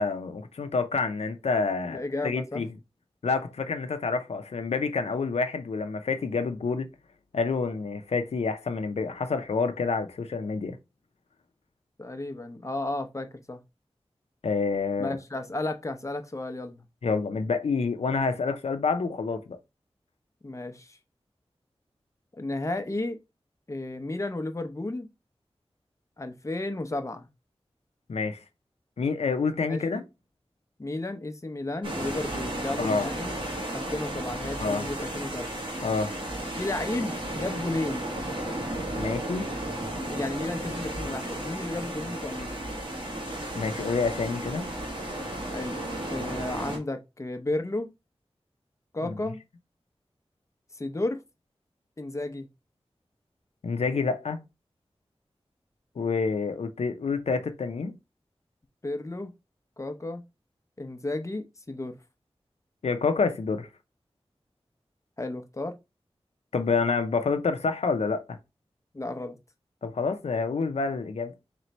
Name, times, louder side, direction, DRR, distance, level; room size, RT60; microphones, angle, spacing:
voice 1, 0.0-2.7 3.2-6.9 7.3-10.8 14.4-15.1 17.0-19.6 28.1-28.4 29.0-30.0 32.8-33.1 34.6-34.9 35.8-36.1 39.0-39.5 43.5-44.7 49.0-49.1 53.6-54.4 56.0-58.0 62.8-63.7 66.5-68.4 69.8-71.3, left 4 dB, 85° left, 0.5 m, -28 dB
voice 2, 1.8-2.6 12.0-13.6 15.0-16.8 20.4-21.0 22.3-23.2 23.7-25.1 26.2-27.3 29.7-30.0 30.8-33.3 33.7-35.5 36.5-38.1 39.9-42.6 45.5-45.8 46.1-47.9 48.9-49.4 50.7-51.2 52.0-52.5 58.8-59.3 59.8-60.2 60.8-62.0 65.2-65.8 68.9-69.4, left 2 dB, 30° left, 0.7 m, -33 dB
sound 1, 31.8-46.8, right 1 dB, 50° right, 1.6 m, -34 dB
3.3 x 3.1 x 4.0 m
wide cardioid pair, 60°, 10 cm